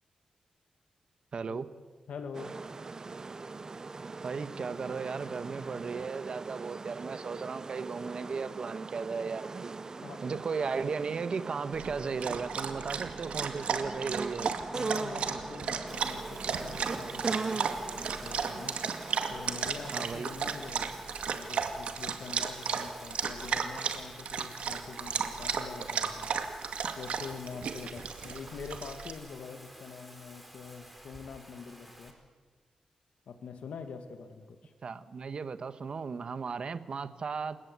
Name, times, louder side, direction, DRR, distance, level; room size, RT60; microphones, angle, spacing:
voice 1, 1.3-1.7 4.2-9.8 10.2-14.5 19.9-20.3 34.8-37.6, right 5 dB, 50° right, 12 dB, 1.3 m, -36 dB
voice 2, 2.1-2.5 10.0-10.5 14.7-18.8 19.3-21.0 21.3-26.4 27.0-32.1 33.3-34.7, left 5 dB, 80° left, 7 dB, 2.0 m, -45 dB
sound 1, 2.3-21.9, right 3 dB, 30° right, 0.6 m, -41 dB
Dog, 11.7-29.1, right 6 dB, 80° right, 2.1 m, -34 dB
Bathtub (filling or washing), 15.9-32.1, equal, ahead, 4.6 m, -52 dB
29.0 x 17.0 x 8.3 m, 1.5 s
wide cardioid pair, 105°, 2 cm